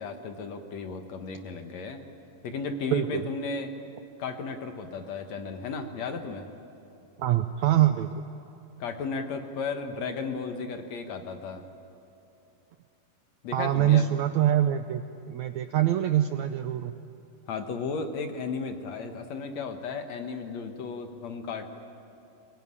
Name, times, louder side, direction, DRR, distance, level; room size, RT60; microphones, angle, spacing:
voice 1, 0.0-2.0 2.4-3.7 4.2-6.5 8.8-11.6 13.4-14.1 17.5-21.7, left 4 dB, 60° left, 6 dB, 2.2 m, -34 dB
voice 2, 2.9-3.2 7.2-8.2 13.5-17.0, right 12 dB, 80° right, 9 dB, 1.7 m, -24 dB
23.0 x 22.0 x 9.8 m, 2.8 s
omnidirectional pair, 4.0 m